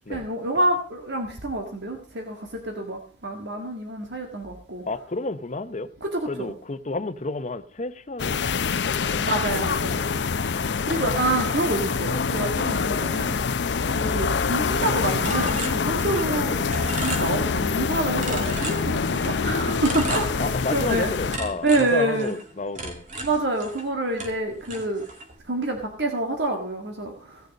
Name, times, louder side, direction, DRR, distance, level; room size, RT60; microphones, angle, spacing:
voice 1, 0.1-4.8 6.0-6.5 9.2-10.0 10.8-13.4 13.9-16.6 17.0-21.1 21.6-22.3 23.2-25.0 25.5-27.4, right 2 dB, 80° right, 1.9 m, -27 dB
voice 2, 4.9-5.9 6.3-9.3 10.9-11.3 12.2-12.3 14.0-14.2 16.2-16.4 20.4-23.0, left 3 dB, 45° left, 0.8 m, -31 dB
sound 1, 8.2-21.4, left 5 dB, 85° left, 0.6 m, -25 dB
sound 2, 15.2-16.4 16.7-17.8 18.2-19.4 19.8-21.0 21.3-23.9 24.2-25.4, right 2 dB, 45° right, 2.2 m, -35 dB
16.5 x 6.7 x 5.2 m
head